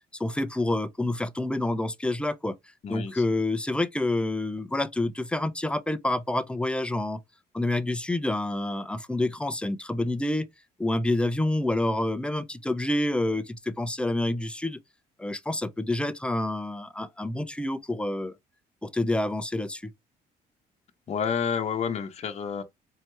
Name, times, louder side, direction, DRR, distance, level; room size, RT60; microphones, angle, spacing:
voice 1, 0.2-2.5 2.9-7.2 7.5-10.5 10.8-14.8 15.2-18.3 18.8-19.9, left 1 dB, 5° left, 0.4 m, -28 dB
voice 2, 2.8-3.2 21.1-22.6, left 7 dB, 40° left, 0.8 m, -29 dB
4.3 x 2.8 x 3.2 m
cardioid pair, 110°, 17 cm